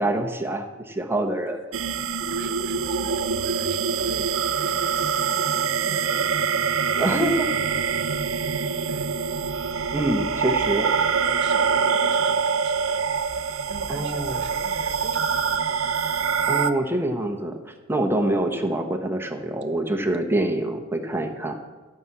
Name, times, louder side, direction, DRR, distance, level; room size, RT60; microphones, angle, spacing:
voice 1, 0.0-1.6 6.9-7.5 9.9-10.9 13.9-14.4 16.5-17.6 17.9-21.6, right 1 dB, 10° right, 4 dB, 1.1 m, -25 dB
sound 1, 1.7-16.7, right 6 dB, 85° right, 0.8 m, -25 dB
voice 2, 2.3-6.3 6.9-7.6 8.9-9.1 10.3-13.0 13.7-15.6, right 3 dB, 60° right, 9 dB, 1.2 m, -40 dB
14.5 x 6.1 x 8.4 m, 1.3 s
head